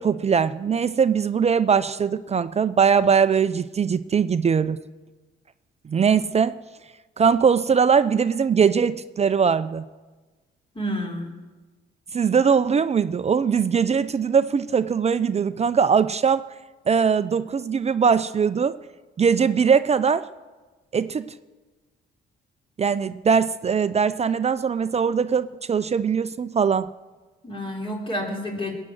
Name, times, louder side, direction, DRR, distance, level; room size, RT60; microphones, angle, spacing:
voice 1, 0.0-4.8 5.9-6.6 7.2-9.8 12.1-16.4 16.9-18.8 19.2-20.3 20.9-21.3 22.8-26.9, right 6 dB, 35° right, 0.5 m, -21 dB
voice 2, 10.8-11.3 27.4-28.7, equal, 25° left, 3.6 m, -29 dB
20.5 x 8.8 x 7.9 m
cardioid pair, 90°, 20 cm